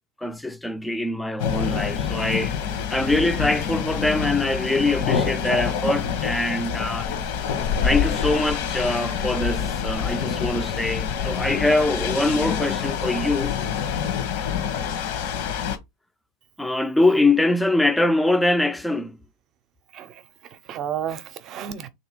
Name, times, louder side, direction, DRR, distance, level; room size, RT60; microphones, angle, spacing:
voice 1, 0.2-2.6 2.9-7.1 7.8-13.5 16.6-19.2, left 2 dB, 5° left, 0.5 m, -23 dB
sound 1, 1.4-15.8, left 7 dB, 65° left, 1.2 m, -26 dB
voice 2, 19.9-21.9, right 9 dB, 40° right, 0.7 m, -33 dB
3.3 x 2.8 x 4.5 m
supercardioid pair, 115°, 0 cm